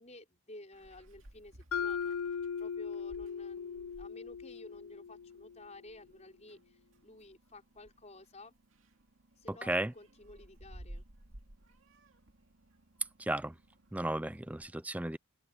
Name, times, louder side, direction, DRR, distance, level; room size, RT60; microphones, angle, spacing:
voice 1, 0.0-8.5 9.4-11.1, left 2 dB, 30° left, 5.4 m, -53 dB
Meow, 0.7-14.7, right 1 dB, 65° right, 2.5 m, -57 dB
Mallet percussion, 1.7-5.7, left 6 dB, 80° left, 0.6 m, -38 dB
voice 2, 13.2-13.5 13.9-15.2, right 1 dB, 5° right, 0.4 m, -34 dB
open air
head